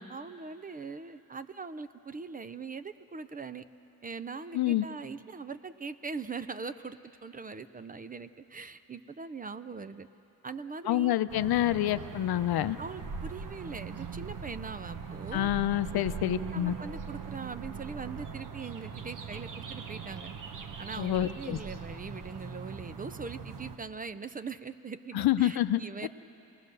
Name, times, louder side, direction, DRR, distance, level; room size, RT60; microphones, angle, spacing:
voice 1, 0.1-3.6 4.0-10.1 10.4-11.2 12.8-15.5 15.9-16.0 16.5-20.3 20.8-26.1, right 4 dB, 25° right, 12 dB, 0.4 m, -41 dB
voice 2, 4.5-4.8 10.9-12.8 15.3-16.7 21.0-21.6 25.1-26.1, left 13 dB, 85° left, 13 dB, 0.7 m, -27 dB
sound 1, 11.3-23.8, right 5 dB, 55° right, 1.2 m, -41 dB
27.5 x 19.0 x 6.8 m, 3.0 s
wide cardioid pair, 145°, 36 cm